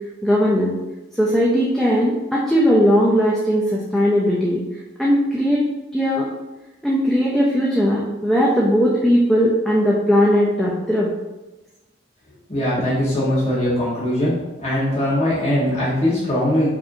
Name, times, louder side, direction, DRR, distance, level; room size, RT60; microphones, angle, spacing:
voice 1, 0.2-0.7 1.2-4.6 5.0-5.6 5.9-6.3 6.8-11.1, equal, ahead, -5 dB, 0.4 m, -18 dB
voice 2, 12.5-14.3 14.6-16.7, left 1 dB, 35° left, -10 dB, 1.1 m, -20 dB
4.9 x 2.7 x 2.6 m, 1.1 s
head